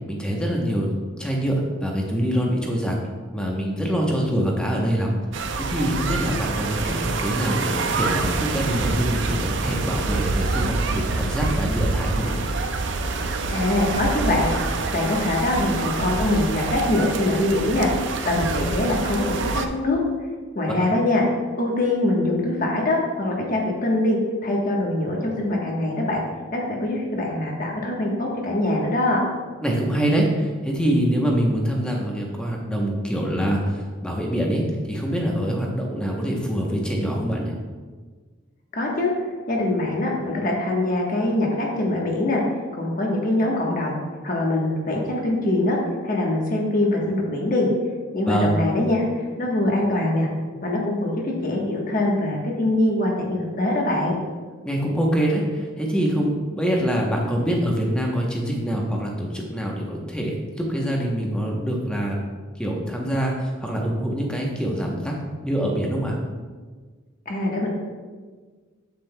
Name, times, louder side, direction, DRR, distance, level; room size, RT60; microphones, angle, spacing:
voice 1, 0.1-3.0 3.3-12.4 20.7-20.9 29.6-34.6 34.9-37.5 48.3-48.5 54.6-62.2 62.6-65.1 65.4-66.2, equal, 5° left, -1 dB, 0.8 m, -25 dB
sound 1, 5.3-19.7, right 3 dB, 60° right, 0.5 m, -26 dB
voice 2, 13.5-14.5 14.9-17.9 18.2-20.0 20.5-21.2 21.6-26.2 26.5-29.2 38.7-39.1 39.5-42.4 42.8-44.0 44.2-45.8 46.0-47.7 48.1-49.1 49.4-50.3 50.6-54.1 67.3-67.7, left 1 dB, 45° left, -1 dB, 1.2 m, -23 dB
7.5 x 7.4 x 2.2 m, 1.5 s
head